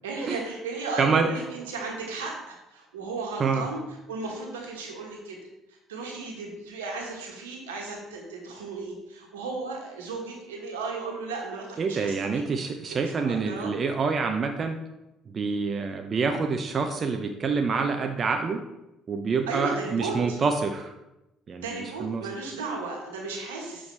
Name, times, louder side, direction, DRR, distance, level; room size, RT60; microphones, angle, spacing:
voice 1, 0.0-3.8 4.1-5.4 5.7-13.7 19.5-20.4 21.6-23.9, right 3 dB, 80° right, 0 dB, 1.4 m, -35 dB
voice 2, 1.0-1.3 3.4-3.7 11.8-14.8 15.3-18.6 19.1-20.9 21.5-22.3, right 5 dB, 40° right, 5 dB, 0.6 m, -27 dB
7.0 x 4.9 x 3.3 m, 0.95 s
figure-of-eight pair, 55°, 0 cm